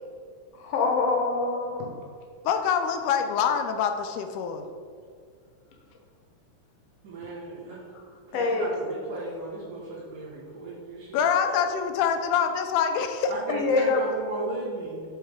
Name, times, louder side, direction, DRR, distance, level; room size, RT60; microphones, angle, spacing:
voice 1, 0.6-1.9 8.3-8.8 13.5-14.0, left 4 dB, 65° left, 0 dB, 1.8 m, -25 dB
voice 2, 2.5-4.7 11.1-13.3, left 7 dB, 80° left, 7 dB, 1.9 m, -25 dB
voice 3, 7.0-7.9 8.3-11.3 13.3-15.0, right 2 dB, 75° right, -11 dB, 3.2 m, -35 dB
8.6 x 4.2 x 3.6 m, 2.1 s
omnidirectional pair, 3.8 m